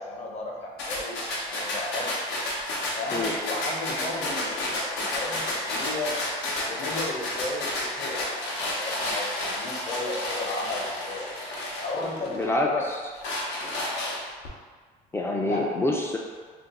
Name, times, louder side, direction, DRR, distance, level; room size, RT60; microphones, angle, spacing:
voice 1, 0.0-2.1 3.0-6.1 6.7-8.5 8.7-11.3 11.8-12.9 15.3-15.7, left 2 dB, 40° left, -2 dB, 0.7 m, -34 dB
sound 1, 0.8-12.5 12.9-14.5, left 1 dB, 85° left, 0.7 m, -31 dB
voice 2, 12.3-13.0 15.1-16.2, left 2 dB, 15° left, -1 dB, 0.3 m, -27 dB
2.5 x 2.1 x 4.0 m, 1.5 s
cardioid pair, 115°, 17 cm